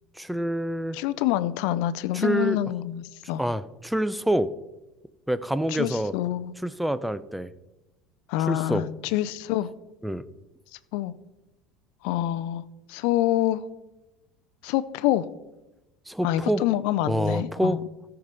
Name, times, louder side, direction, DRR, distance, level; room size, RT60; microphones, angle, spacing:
voice 1, 0.2-1.0 2.1-2.6 3.4-4.5 5.3-6.1 6.6-7.5 8.4-8.8 10.0-10.2 16.1-16.7 17.1-17.8, right 1 dB, 5° right, 16 dB, 0.6 m, -26 dB
voice 2, 0.9-3.4 5.7-6.5 8.3-9.7 10.9-11.1 12.0-12.6 12.9-13.6 14.6-15.3 16.2-17.9, left 13 dB, 70° left, 15 dB, 0.5 m, -26 dB
13.5 x 5.9 x 5.3 m, 1.0 s
hypercardioid pair, 85°, 0 cm